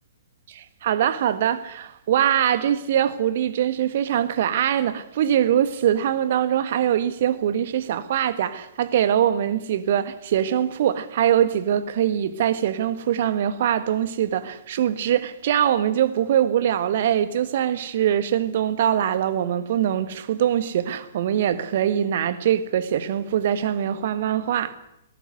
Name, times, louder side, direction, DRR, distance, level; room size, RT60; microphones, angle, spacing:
voice 1, 0.5-24.8, right 10 dB, 45° right, 1.6 m, -23 dB
19.5 x 18.0 x 8.0 m
figure-of-eight pair, 120°, 0 cm